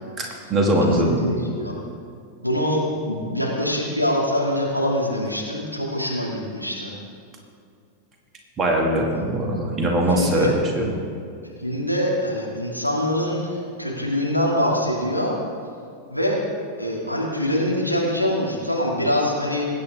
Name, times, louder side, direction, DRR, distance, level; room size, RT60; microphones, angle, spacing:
voice 1, 0.2-1.3 8.6-11.0, right 1 dB, 25° right, 0 dB, 2.2 m, -21 dB
voice 2, 1.0-1.7 2.4-6.9 9.1-9.2 10.1-10.5 11.6-15.3 16.1-16.4 16.8-19.7, equal, 90° right, -3 dB, 2.2 m, -24 dB
21.5 x 9.3 x 3.6 m, 2.3 s
figure-of-eight pair, 90°, 0 cm